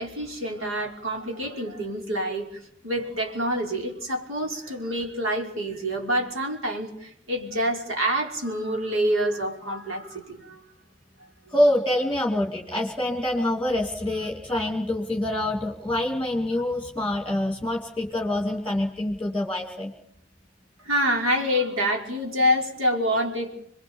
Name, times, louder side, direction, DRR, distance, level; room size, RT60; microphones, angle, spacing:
voice 1, 0.0-2.5 2.8-10.6 20.8-23.6, equal, 75° right, 1 dB, 5.4 m, -27 dB
voice 2, 11.5-19.9, left 1 dB, 5° left, 2 dB, 2.5 m, -26 dB
28.5 x 21.5 x 7.1 m, 0.71 s
head